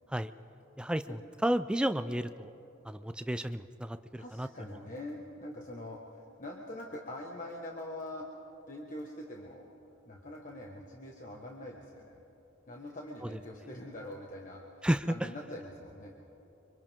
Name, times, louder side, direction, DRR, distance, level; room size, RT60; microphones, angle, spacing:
voice 1, 0.8-2.5 2.9-4.5 14.8-15.1, right 1 dB, 5° right, 11 dB, 0.4 m, -32 dB
voice 2, 4.2-8.3 8.7-9.7 10.1-12.2 12.7-14.6 15.1-16.2, left 1 dB, 40° left, -1 dB, 1.5 m, -44 dB
29.5 x 25.0 x 3.7 m, 2.9 s
head